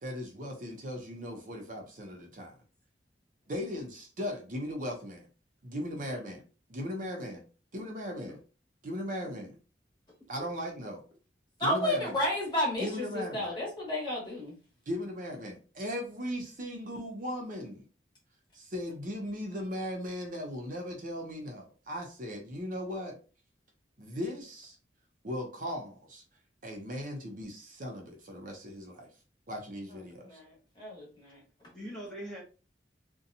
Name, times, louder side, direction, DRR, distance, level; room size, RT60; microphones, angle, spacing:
voice 1, 0.0-2.5 3.5-5.3 5.6-6.4 6.7-7.4 7.7-8.4 8.8-9.5 10.3-11.0 11.6-12.1 12.8-13.5 14.9-17.9 18.5-23.2 24.0-24.8 25.2-26.2 26.6-29.1 29.5-30.4, equal, 45° right, 0.6 m, -38 dB
voice 2, 9.0-9.5 31.7-32.4, equal, 5° left, 0.7 m, -44 dB
voice 3, 11.6-14.5 30.2-31.4, left 1 dB, 25° left, 1.1 m, -32 dB
2.7 x 2.2 x 2.6 m
head